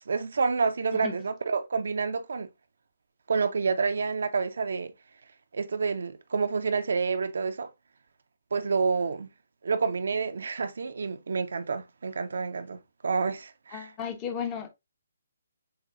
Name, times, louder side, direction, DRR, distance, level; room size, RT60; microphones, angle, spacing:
voice 1, 0.1-2.5 3.3-4.9 5.5-7.7 8.5-9.3 9.6-13.9, right 5 dB, 60° right, 0.4 m, -28 dB
voice 2, 13.7-14.7, left 8 dB, 20° left, 0.6 m, -34 dB
6.9 x 2.3 x 2.4 m
figure-of-eight pair, 135°, 0 cm